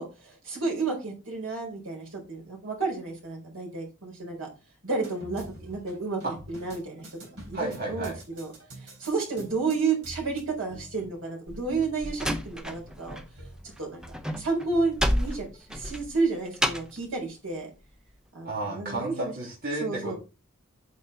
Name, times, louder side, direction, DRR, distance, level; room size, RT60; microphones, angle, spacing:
voice 1, 0.0-4.5 4.8-6.2 6.5-7.1 7.5-8.5 8.8-13.2 13.8-14.0 14.4-17.7 18.3-19.3 19.8-20.1, right 4 dB, 80° right, -1 dB, 4.3 m, -31 dB
sound 1, 5.0-15.9, right 1 dB, 60° right, 3.7 m, -48 dB
voice 2, 7.5-8.1 18.4-20.1, right 2 dB, 45° right, -4 dB, 2.8 m, -32 dB
Slam, 11.5-13.3 13.5-17.0, equal, 5° right, 0.6 m, -30 dB
8.7 x 5.4 x 4.3 m, 0.30 s
head